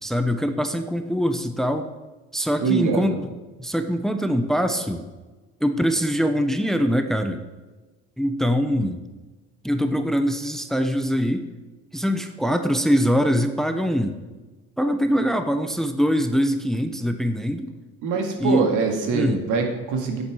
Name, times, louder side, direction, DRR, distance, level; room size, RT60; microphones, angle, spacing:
voice 1, 0.0-1.9 2.3-3.3 3.6-5.0 5.6-7.4 8.2-9.0 9.6-11.5 11.9-14.2 14.8-17.7 18.4-18.7 19.1-19.4, equal, ahead, 8 dB, 0.9 m, -23 dB
voice 2, 2.6-3.2 18.0-20.2, right 5 dB, 75° right, 4 dB, 2.1 m, -23 dB
8.7 x 8.4 x 6.2 m, 1.2 s
supercardioid pair, 80°, 31 cm